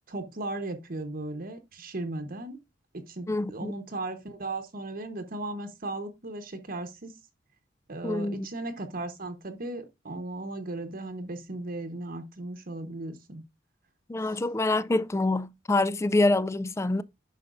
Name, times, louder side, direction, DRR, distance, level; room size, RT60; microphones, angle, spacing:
voice 1, 0.1-2.6 2.9-7.2 7.9-13.4 14.3-14.4, right 2 dB, 50° right, 1.0 m, -36 dB
voice 2, 3.3-3.7 8.0-8.5 14.1-17.0, left 2 dB, 15° left, 0.3 m, -26 dB
10.0 x 5.9 x 2.5 m
head